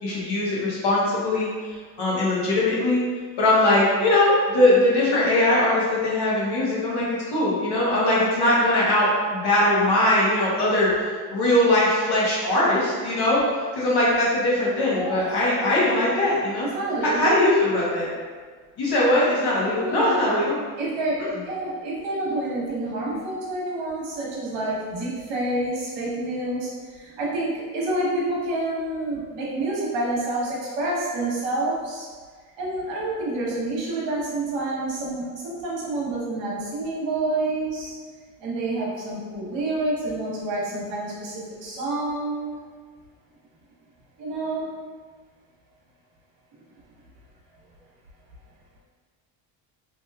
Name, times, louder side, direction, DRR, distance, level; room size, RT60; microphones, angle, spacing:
voice 1, 0.0-1.5 2.0-3.0 3.4-16.7 17.0-18.1 18.8-20.5 21.2-21.3, left 1 dB, 55° left, -6 dB, 1.1 m, -21 dB
voice 2, 14.9-15.4 16.6-17.4 19.8-20.3 20.8-32.1 32.6-37.9 38.4-42.6 44.2-44.7, right 2 dB, 65° right, -5 dB, 1.1 m, -28 dB
3.0 x 3.0 x 2.3 m, 1.5 s
cardioid pair, 125°, 47 cm